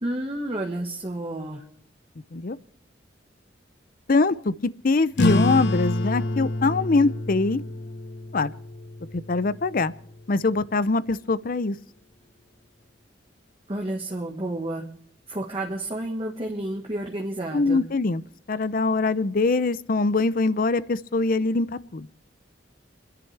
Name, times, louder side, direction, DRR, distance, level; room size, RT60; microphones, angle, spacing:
voice 1, 0.0-1.6 13.7-14.9 15.3-17.8, right 1 dB, 30° right, -1 dB, 1.4 m, -30 dB
voice 2, 4.1-4.5 4.8-7.6 8.3-8.5 9.1-9.9 10.3-11.8 17.5-18.2 18.5-22.1, left 3 dB, 50° left, 16 dB, 0.6 m, -23 dB
sound 1, 5.1-10.2, left 1 dB, 75° left, 1.1 m, -28 dB
30.0 x 10.5 x 3.4 m, 0.66 s
head